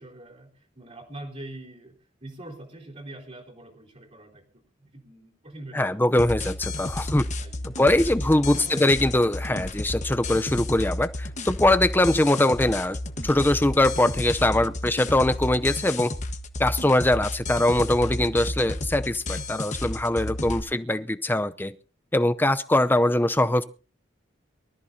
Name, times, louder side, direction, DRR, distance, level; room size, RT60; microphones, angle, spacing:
voice 1, 0.0-5.9 6.8-7.7 8.0-9.0 9.4-9.6 16.7-16.9 20.5-20.9, right 1 dB, 40° right, -4 dB, 3.6 m, -45 dB
voice 2, 5.7-7.3 7.8-13.0 13.2-16.1 16.6-21.7 22.1-23.6, left 1 dB, 10° left, 12 dB, 0.6 m, -22 dB
sound 1, 6.2-20.6, left 2 dB, 40° left, 1.3 m, -32 dB
24.0 x 14.0 x 2.8 m, 0.36 s
head